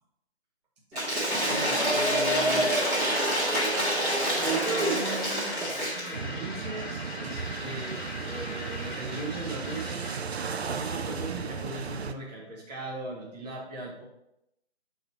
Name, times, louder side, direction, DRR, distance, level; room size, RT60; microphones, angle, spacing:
Cheering / Applause / Crowd, 0.9-6.1, right 1 dB, 10° right, 1.1 m, -26 dB
voice 1, 1.5-2.8 4.4-10.1 10.7-14.0, right 2 dB, 40° right, -4 dB, 1.4 m, -38 dB
sound 1, 2.2-10.5, left 3 dB, 45° left, 1.2 m, -41 dB
sound 2, 6.1-12.1, right 5 dB, 70° right, 0.6 m, -35 dB
6.2 x 4.0 x 4.3 m, 0.81 s
figure-of-eight pair, 150°, 33 cm